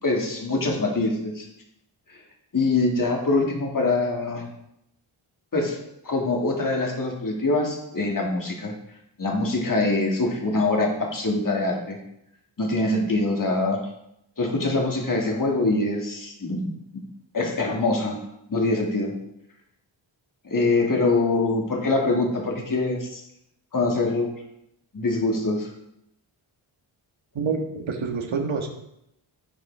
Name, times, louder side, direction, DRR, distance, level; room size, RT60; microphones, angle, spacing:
voice 1, 0.0-1.5 2.5-4.5 5.5-5.8 6.0-8.7 9.2-12.0 12.6-13.8 14.4-16.7 17.3-18.2 18.5-19.1 20.4-23.2 23.7-24.3 24.9-25.7, left 2 dB, 45° left, 0 dB, 2.3 m, -24 dB
voice 2, 27.3-28.7, right 5 dB, 75° right, 3 dB, 1.6 m, -27 dB
14.5 x 5.2 x 3.5 m, 0.80 s
cardioid pair, 65°, 47 cm